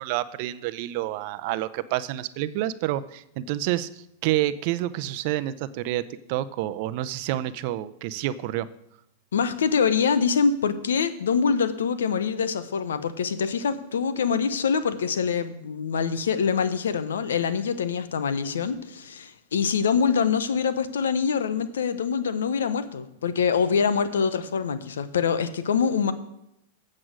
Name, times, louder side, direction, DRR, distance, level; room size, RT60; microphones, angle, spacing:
voice 1, 0.0-8.7, right 14 dB, 55° right, 15 dB, 0.5 m, -28 dB
voice 2, 9.3-26.1, left 6 dB, 85° left, 12 dB, 0.8 m, -25 dB
8.0 x 7.6 x 6.2 m, 0.81 s
hypercardioid pair, 120°, 0 cm